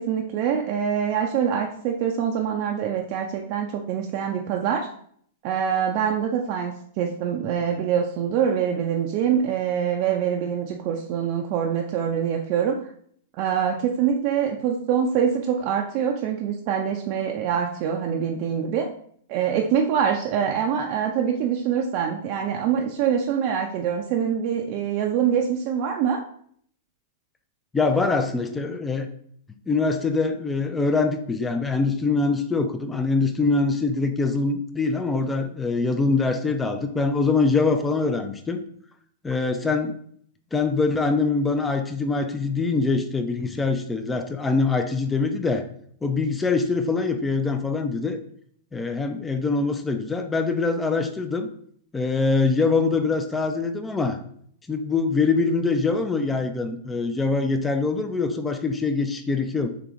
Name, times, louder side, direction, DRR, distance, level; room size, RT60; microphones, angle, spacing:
voice 1, 0.0-4.9 5.4-12.9 13.3-18.8 19.3-26.2, right 8 dB, 45° right, 1 dB, 0.4 m, -24 dB
voice 2, 27.7-29.1 29.7-38.6 39.2-40.0 40.5-45.6 46.0-48.2 48.7-51.5 51.9-54.2 54.7-59.7, left 4 dB, 15° left, 7 dB, 0.4 m, -23 dB
3.4 x 2.9 x 3.6 m, 0.62 s
hypercardioid pair, 110°, 0 cm